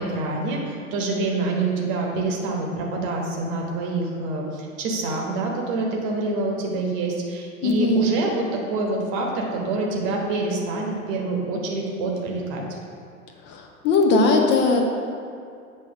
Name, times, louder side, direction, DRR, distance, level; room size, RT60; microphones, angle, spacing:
voice 1, 0.0-12.6, right 2 dB, 40° right, 0 dB, 1.1 m, -26 dB
voice 2, 7.6-8.1 13.5-14.8, left 3 dB, 25° left, 3 dB, 0.8 m, -19 dB
7.7 x 3.0 x 5.9 m, 2.3 s
figure-of-eight pair, 90°, 41 cm